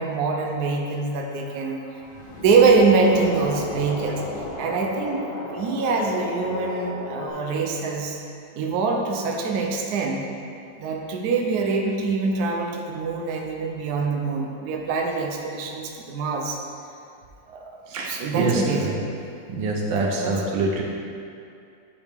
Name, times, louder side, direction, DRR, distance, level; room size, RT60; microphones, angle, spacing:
voice 1, 0.0-1.8 2.3-4.2 4.6-8.2 8.6-10.2 10.8-16.6 17.5-17.7 18.0-19.0 20.2-20.4, right 4 dB, 65° right, 1 dB, 1.1 m, -24 dB
sound 1, 1.2-7.3, left 3 dB, 75° left, 0.5 m, -35 dB
voice 2, 17.9-19.0 19.5-20.8, right 3 dB, 85° right, -1 dB, 1.6 m, -25 dB
9.5 x 4.9 x 3.5 m, 2.5 s
omnidirectional pair, 2.0 m